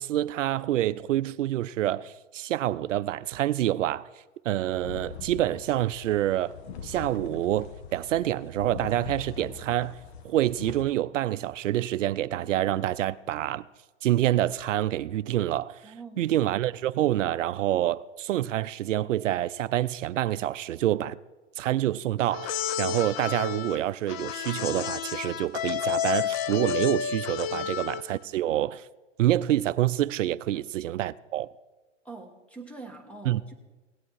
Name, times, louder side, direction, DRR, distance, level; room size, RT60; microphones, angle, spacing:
voice 1, 0.0-4.1 4.4-6.6 6.8-10.0 10.2-13.6 14.0-21.2 21.6-28.9 29.2-31.5 33.3-33.5, right 13 dB, 85° right, 0.5 m, -27 dB
sound 1, 4.6-10.8, left 7 dB, 60° left, 1.2 m, -42 dB
voice 2, 15.8-16.3 27.5-27.7 30.5-30.7 32.0-33.5, right 3 dB, 5° left, 1.3 m, -44 dB
sound 2, 22.3-28.2, left 9 dB, 30° left, 0.5 m, -31 dB
17.0 x 8.7 x 4.6 m
hypercardioid pair, 130°, 37 cm